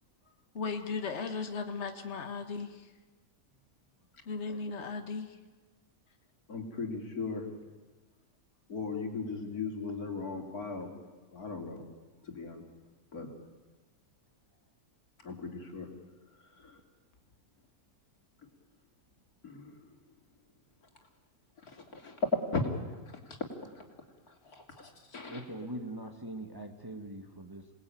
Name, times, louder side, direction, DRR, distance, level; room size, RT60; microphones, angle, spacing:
voice 1, 0.5-2.9 4.3-5.4, left 4 dB, 50° left, 6 dB, 1.9 m, -36 dB
voice 2, 6.5-7.4 8.7-10.9 11.3-11.9 12.3-12.6 13.1-13.3 15.2-15.9 16.6-16.8 19.4-19.7 21.7-22.7 23.3-23.4 24.5-25.4, left 3 dB, 85° left, 3 dB, 3.6 m, -36 dB
voice 3, 25.3-27.7, right 1 dB, 15° right, 5 dB, 1.7 m, -42 dB
27.5 x 19.5 x 9.2 m, 1.3 s
omnidirectional pair, 1.5 m